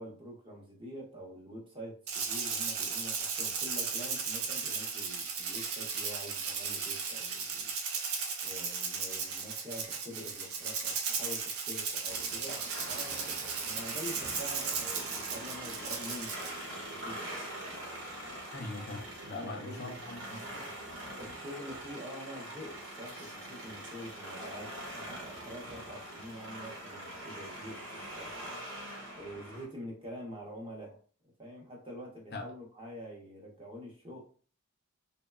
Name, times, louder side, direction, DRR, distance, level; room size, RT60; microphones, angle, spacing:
voice 1, 0.0-7.7 8.4-17.4 19.3-19.9 21.2-28.5 29.1-31.0 31.4-34.2, equal, 25° right, -1 dB, 0.6 m, -46 dB
Rattle (instrument), 2.1-16.6, right 5 dB, 75° right, 0.5 m, -36 dB
sound 1, 12.1-29.6, right 1 dB, 60° right, 0.8 m, -43 dB
voice 2, 18.5-20.7 32.3-32.5, left 2 dB, 45° left, 2 dB, 0.4 m, -42 dB
3.0 x 2.1 x 2.2 m, 0.42 s
head